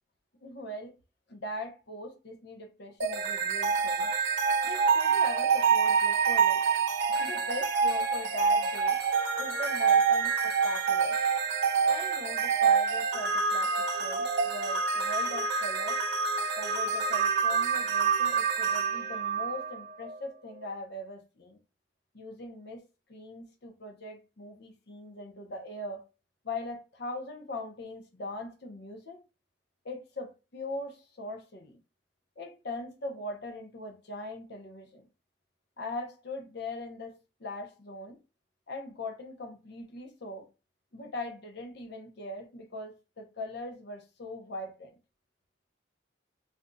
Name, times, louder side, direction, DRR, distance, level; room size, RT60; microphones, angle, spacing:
voice 1, 0.4-0.9 1.3-4.1 4.6-6.6 7.2-9.0 9.4-11.2 11.8-16.0 16.5-21.6 22.1-22.8 23.1-26.1 26.4-29.2 29.8-31.8 32.4-35.1 35.8-38.2 38.7-40.5 40.9-44.9, left 2 dB, 55° left, 0.7 m, -40 dB
sound 1, 3.0-20.2, right 5 dB, 55° right, 0.7 m, -27 dB
3.8 x 2.6 x 2.2 m
head